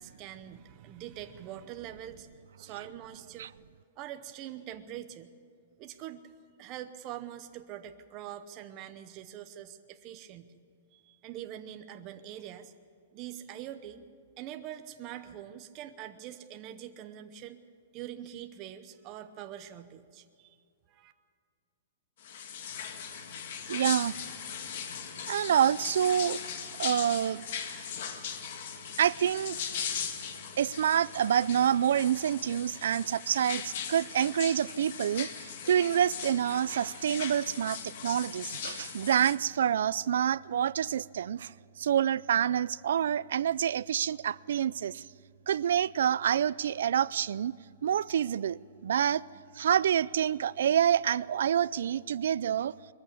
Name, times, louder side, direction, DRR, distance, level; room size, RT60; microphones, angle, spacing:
voice 1, 0.0-2.3 2.6-3.5 4.0-5.3 5.8-6.2 6.6-10.7 10.9-12.7 13.1-14.0 14.4-17.6 17.9-20.6 20.9-21.1, right 11 dB, 25° right, 0.8 m, -44 dB
sound 1, 22.2-39.4, left 7 dB, 50° left, 1.8 m, -39 dB
voice 2, 23.7-24.2 25.3-26.4 26.8-27.4 29.0-29.8 30.6-41.5 41.8-45.0 45.5-47.5 47.8-49.2 49.6-52.7, right 9 dB, 70° right, 0.4 m, -27 dB
21.5 x 14.5 x 8.4 m
hypercardioid pair, 175°, 0 cm